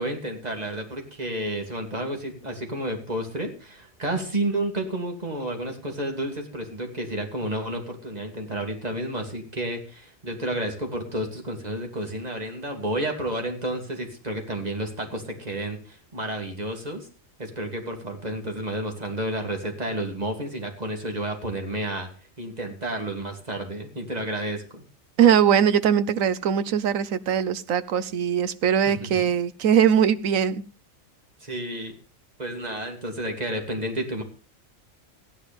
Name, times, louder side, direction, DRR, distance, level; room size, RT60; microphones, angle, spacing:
voice 1, 0.0-17.1 17.4-22.1 22.4-24.8 29.0-29.2 31.4-32.0 32.4-34.2, right 1 dB, 30° right, 3 dB, 2.9 m, -31 dB
voice 2, 25.2-30.6, right 8 dB, 80° right, 14 dB, 1.3 m, -21 dB
15.5 x 10.0 x 5.3 m, 0.36 s
omnidirectional pair, 1.4 m